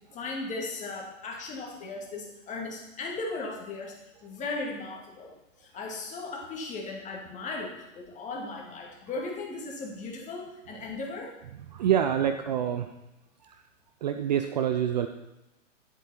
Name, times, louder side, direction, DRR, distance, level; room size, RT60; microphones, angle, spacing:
voice 1, 0.1-4.0 4.2-5.3 5.6-11.3, left 3 dB, 20° left, -1 dB, 2.1 m, -37 dB
voice 2, 11.7-12.9 13.4-13.6 14.0-15.1, right 9 dB, 35° right, 8 dB, 0.5 m, -26 dB
10.5 x 7.7 x 4.3 m, 0.95 s
figure-of-eight pair, 110°, 38 cm